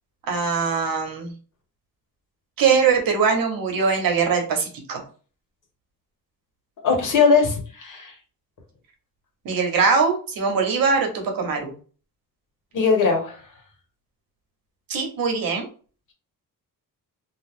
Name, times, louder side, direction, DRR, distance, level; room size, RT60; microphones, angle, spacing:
voice 1, 0.3-1.3 2.6-5.0 9.4-11.8 14.9-15.6, right 5 dB, 75° right, 3 dB, 1.0 m, -22 dB
voice 2, 6.8-8.1 12.7-13.4, left 5 dB, 60° left, 1 dB, 1.1 m, -20 dB
2.5 x 2.3 x 3.5 m, 0.38 s
wide cardioid pair, 140°, 35 cm